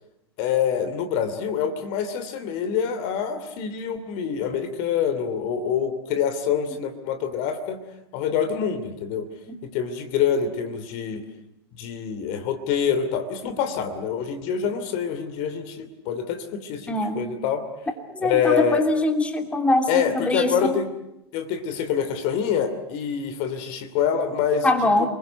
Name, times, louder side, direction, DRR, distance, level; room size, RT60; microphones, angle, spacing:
voice 1, 0.4-7.8 8.1-9.3 9.6-11.2 11.8-17.7 18.2-18.9 19.9-20.9 21.3-25.1, left 7 dB, 45° left, 9 dB, 2.9 m, -26 dB
voice 2, 16.9-17.2 18.1-20.7 24.6-25.1, left 1 dB, 10° left, 5 dB, 3.1 m, -22 dB
29.5 x 21.5 x 8.0 m, 0.86 s
figure-of-eight pair, 95°, 14 cm